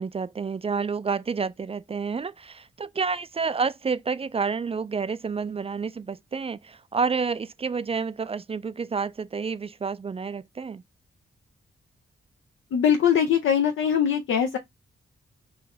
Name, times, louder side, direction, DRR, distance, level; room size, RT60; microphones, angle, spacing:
voice 1, 0.0-10.8, right 5 dB, 30° right, 0.3 m, -29 dB
voice 2, 12.7-14.6, left 8 dB, 75° left, 0.5 m, -22 dB
3.8 x 2.5 x 4.1 m
cardioid pair, 55°, 21 cm